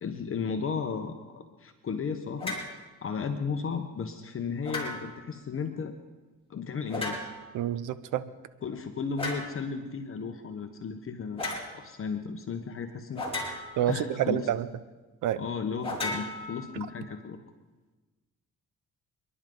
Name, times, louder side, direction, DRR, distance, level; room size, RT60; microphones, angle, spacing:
voice 1, 0.0-2.6 3.0-5.9 6.5-7.3 8.6-14.5 15.4-17.4, left 5 dB, 45° left, 5 dB, 1.2 m, -35 dB
sound 1, 2.4-2.7 4.6-5.3 6.9-7.5 9.2-9.5 11.4-11.7 13.2-13.9 15.8-17.0, left 2 dB, 20° left, 4.5 m, -35 dB
voice 2, 7.5-8.3 13.8-14.7 15.2-15.4, right 11 dB, 85° right, 15 dB, 0.8 m, -28 dB
28.0 x 11.0 x 3.9 m, 1.2 s
cardioid pair, 90°, 30 cm